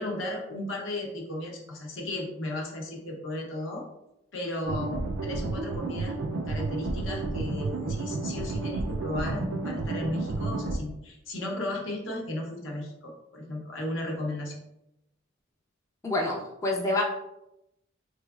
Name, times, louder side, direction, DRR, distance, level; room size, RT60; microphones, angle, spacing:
voice 1, 0.0-3.8 4.3-14.6, left 1 dB, 70° left, 0 dB, 0.8 m, -35 dB
sound 1, 4.6-10.8, right 3 dB, 85° right, 0.4 m, -31 dB
voice 2, 16.0-17.0, left 2 dB, 15° left, -2 dB, 0.4 m, -27 dB
3.7 x 3.1 x 2.3 m, 0.86 s
head